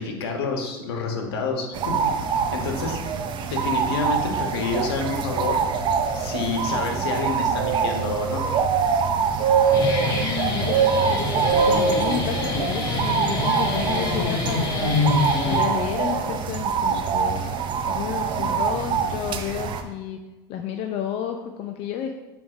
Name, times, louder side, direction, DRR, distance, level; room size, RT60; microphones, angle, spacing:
voice 1, 0.0-1.9 2.5-3.0 3.5-5.6 6.1-8.4, left 4 dB, 80° left, 3 dB, 1.4 m, -28 dB
sound 1, 1.7-19.8, right 6 dB, 35° right, 0.7 m, -24 dB
Guitar, 9.5-16.1, left 3 dB, 30° left, 1.5 m, -26 dB
voice 2, 10.0-15.0 15.4-17.6 17.9-20.2 20.5-22.1, left 9 dB, 50° left, 5 dB, 0.6 m, -31 dB
7.5 x 3.6 x 4.9 m, 1.1 s
supercardioid pair, 115°, 13 cm